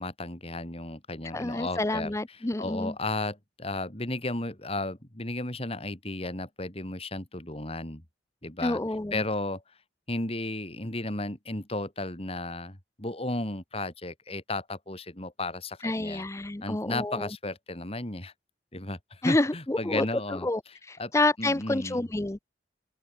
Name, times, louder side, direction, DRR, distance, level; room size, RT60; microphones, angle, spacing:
voice 1, 0.0-2.1 2.6-8.0 8.4-8.8 9.1-9.6 10.1-16.2 16.6-18.3 18.7-20.5 21.0-21.1 21.4-22.1, left 2 dB, 35° left, 3.4 m, -34 dB
voice 2, 1.3-3.0 8.6-9.2 15.8-17.3 19.2-20.1 20.3-22.4, left 2 dB, 15° left, 0.5 m, -28 dB
open air
head